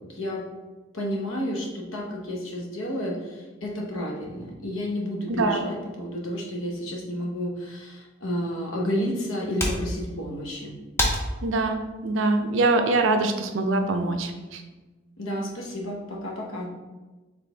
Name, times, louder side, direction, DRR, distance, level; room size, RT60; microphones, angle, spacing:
voice 1, 0.1-0.5 0.9-10.7 15.2-16.7, equal, 70° left, -1 dB, 0.9 m, -31 dB
sound 1, 8.4-13.5, equal, 10° left, 0.5 m, -33 dB
voice 2, 11.4-14.6, right 2 dB, 65° right, 6 dB, 0.4 m, -24 dB
4.1 x 3.3 x 3.3 m, 1.2 s
head